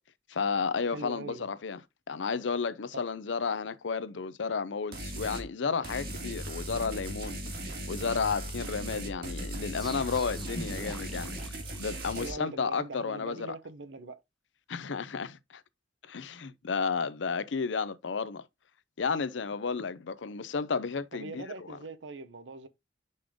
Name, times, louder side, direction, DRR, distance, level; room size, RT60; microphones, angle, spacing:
voice 1, 0.3-1.8 2.1-7.6 7.9-11.3 11.8-13.6 14.7-15.6 16.1-18.4 19.0-21.8, left 5 dB, 85° left, 0.6 m, -32 dB
voice 2, 0.9-1.4 12.1-14.2 21.1-22.7, right 3 dB, 85° right, 0.7 m, -42 dB
sound 1, 4.9-5.4 5.8-12.3, right 1 dB, 55° right, 1.9 m, -38 dB
sound 2, 9.8-12.6, equal, ahead, 0.7 m, -45 dB
5.4 x 5.1 x 3.5 m
head